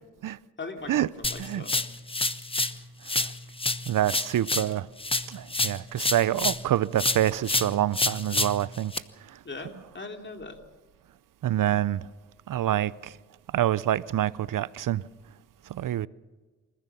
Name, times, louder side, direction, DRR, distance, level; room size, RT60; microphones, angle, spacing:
voice 1, 0.6-1.8 9.4-10.6, left 3 dB, 35° left, 3.0 m, -40 dB
sound 1, 1.2-2.8 3.1-6.7 7.0-9.0, left 2 dB, 15° left, 1.0 m, -28 dB
voice 2, 3.9-4.9 5.3-8.9 11.4-12.1 12.5-13.2 13.5-15.0 15.7-16.1, right 12 dB, 80° right, 0.6 m, -26 dB
27.5 x 15.0 x 7.0 m
cardioid pair, 80°, 32 cm